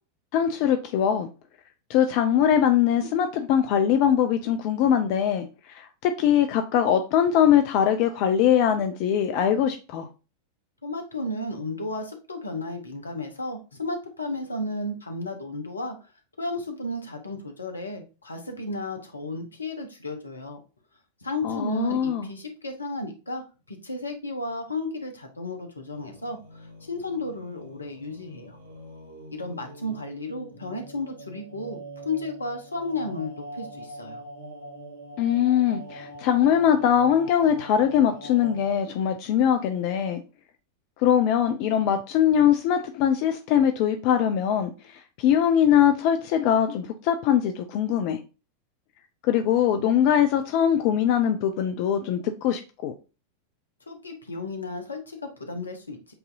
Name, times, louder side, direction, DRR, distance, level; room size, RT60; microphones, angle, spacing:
voice 1, 0.3-1.3 1.9-10.1 21.4-22.3 35.2-40.2 41.0-48.2 49.2-52.9, left 9 dB, 45° left, 0.4 m, -22 dB
voice 2, 10.8-16.0 16.4-20.6 21.2-28.6 29.3-34.2 53.9-56.1, left 2 dB, 80° left, 0.9 m, -33 dB
sound 1, 25.9-38.7, equal, 75° right, 1.1 m, -43 dB
7.7 x 2.7 x 2.6 m
figure-of-eight pair, 90°, 0 cm